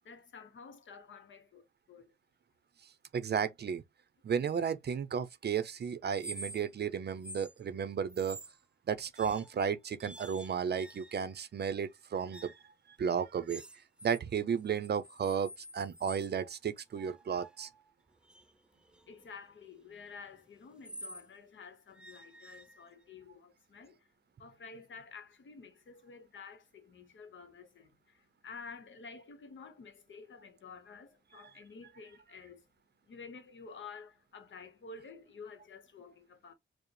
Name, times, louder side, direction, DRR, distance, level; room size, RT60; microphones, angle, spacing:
voice 1, 0.0-2.1 19.1-24.1 24.4-32.7 33.1-36.5, left 5 dB, 65° left, 0.8 m, -51 dB
voice 2, 3.1-3.8 4.2-8.4 8.9-12.5 13.0-13.6 14.0-17.7, right 7 dB, 50° right, 0.5 m, -33 dB
sound 1, 6.1-6.8 7.2-7.5 8.1-8.6 9.1-9.6 10.0-11.4 12.3-12.7 13.5-14.2 14.6-16.3 16.9-21.3 21.9-23.1, right 1 dB, 5° right, 0.3 m, -49 dB
4.7 x 2.0 x 3.2 m
cardioid pair, 80°, 21 cm